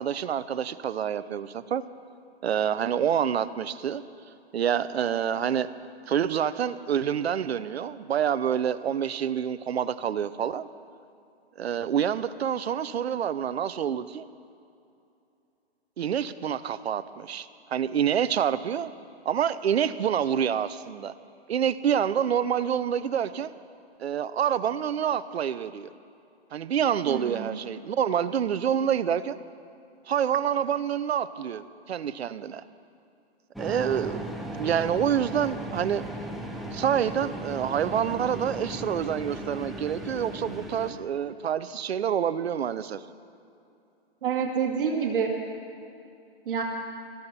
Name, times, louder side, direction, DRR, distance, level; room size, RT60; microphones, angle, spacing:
voice 1, 0.0-1.8 2.4-4.0 4.5-5.7 6.1-10.7 11.6-14.3 16.0-18.9 19.2-21.1 21.5-23.5 24.0-25.9 26.5-29.4 30.1-32.6 33.6-34.3 34.6-36.0 36.7-43.0, right 8 dB, 75° right, 14 dB, 0.8 m, -27 dB
voice 2, 27.1-27.6 44.2-45.3 46.5-46.6, right 6 dB, 55° right, 1 dB, 2.3 m, -27 dB
sound 1, 33.5-40.9, right 1 dB, ahead, 0.5 m, -37 dB
20.0 x 14.0 x 4.2 m, 2.6 s
hypercardioid pair, 145°, 32 cm